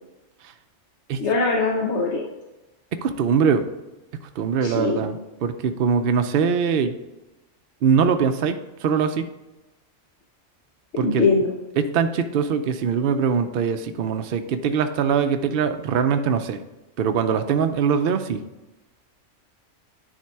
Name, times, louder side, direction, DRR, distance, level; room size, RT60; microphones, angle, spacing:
voice 1, 1.2-2.2 4.6-5.0 10.9-11.5, left 3 dB, 65° left, -1 dB, 1.2 m, -21 dB
voice 2, 3.0-3.6 4.1-6.9 7.8-8.5 8.8-9.3 11.0-11.3 11.8-16.6 17.0-18.4, right 6 dB, 55° right, 8 dB, 0.7 m, -22 dB
10.0 x 3.7 x 4.6 m, 1.0 s
omnidirectional pair, 1.3 m